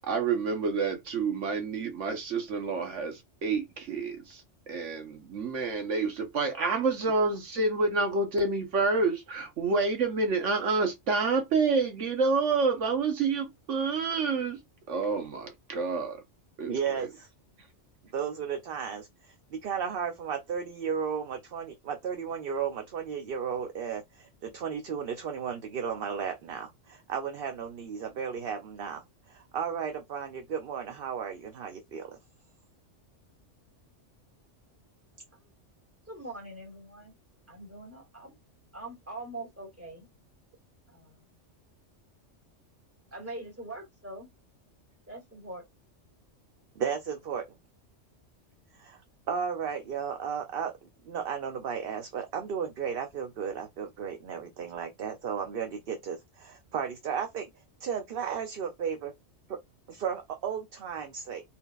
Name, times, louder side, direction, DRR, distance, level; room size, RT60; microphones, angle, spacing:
voice 1, 0.0-14.6 14.9-16.2 16.6-17.1, right 4 dB, 75° right, 1.3 m, -28 dB
voice 2, 16.7-17.3 18.1-32.1 46.8-47.4 48.7-49.0 49.3-57.5 57.8-59.1 59.5-59.6 59.9-61.4, right 7 dB, 55° right, 0.8 m, -34 dB
voice 3, 36.1-37.2 37.5-38.3 38.7-40.1 40.9-41.2 43.1-44.3 45.1-45.7, right 2 dB, 10° right, 1.9 m, -42 dB
4.3 x 3.5 x 2.4 m
omnidirectional pair, 1.3 m